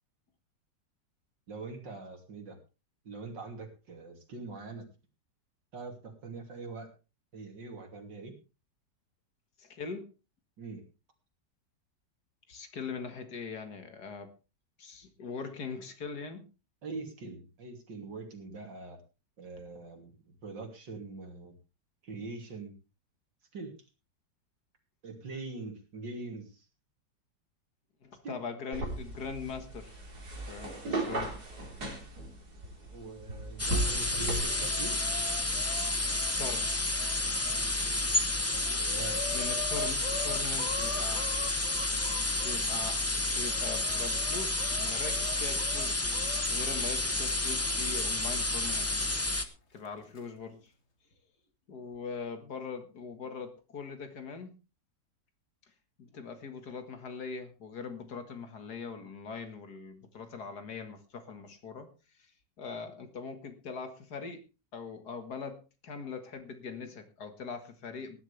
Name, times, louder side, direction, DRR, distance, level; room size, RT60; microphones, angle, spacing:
voice 1, 1.5-2.6 3.1-4.8 5.7-6.9 7.3-8.4 10.6-10.8 16.8-19.0 19.4-21.6 22.0-22.7 23.5-23.8 25.0-26.7 28.2-28.4 32.9-35.0 38.9-39.2, right 3 dB, 85° right, 4 dB, 3.5 m, -43 dB
voice 2, 9.6-10.1 12.5-14.3 14.8-16.4 28.0-29.9 30.5-31.3 36.4-37.1 39.3-41.3 42.3-43.0 43.3-46.1 46.5-49.0 49.7-50.7 51.7-54.5 56.0-61.9 62.2-62.3 62.6-64.4 64.7-68.2, left 5 dB, 60° left, 8 dB, 2.3 m, -41 dB
sound 1, 28.7-34.4, right 2 dB, 60° right, 4.4 m, -36 dB
sound 2, 33.6-49.5, left 2 dB, 15° left, 0.7 m, -30 dB
Chicken rooster, 34.1-37.6 38.2-38.3 38.5-42.6 43.2-46.4 47.7-47.8 48.8-48.9 49.9-50.2, left 3 dB, 40° left, 1.9 m, -43 dB
19.0 x 10.5 x 3.4 m, 0.30 s
omnidirectional pair, 1.9 m